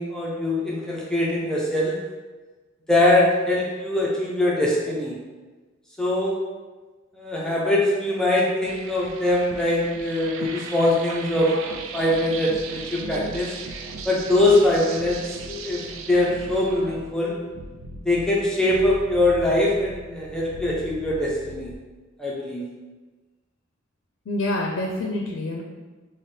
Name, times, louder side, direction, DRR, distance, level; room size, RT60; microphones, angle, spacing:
voice 1, 0.0-2.0 2.9-5.1 6.0-6.4 7.2-13.5 14.0-15.2 15.5-17.4 18.1-21.7 22.2-22.7, left 1 dB, 5° left, -5 dB, 0.4 m, -22 dB
sound 1, 8.6-21.8, right 3 dB, 85° right, 0.3 m, -38 dB
voice 2, 24.3-25.6, left 1 dB, 80° left, 0 dB, 0.4 m, -27 dB
4.1 x 2.1 x 3.2 m, 1.3 s
head